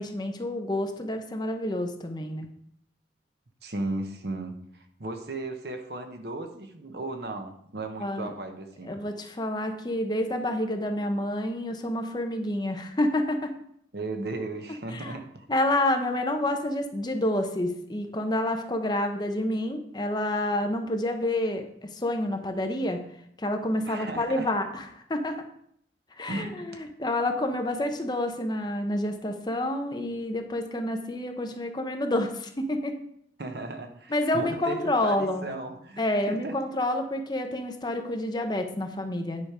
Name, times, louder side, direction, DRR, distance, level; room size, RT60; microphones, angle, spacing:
voice 1, 0.0-2.5 8.0-8.3 8.8-13.5 14.9-15.2 15.5-23.0 23.4-25.4 26.2-33.0 34.1-35.5 36.0-39.5, left 1 dB, 25° left, 5 dB, 0.8 m, -28 dB
voice 2, 3.6-9.0 13.9-15.5 23.9-24.4 26.3-26.6 33.4-34.8 35.0-36.5, right 2 dB, 65° right, 5 dB, 1.1 m, -35 dB
9.6 x 5.1 x 5.0 m, 0.68 s
head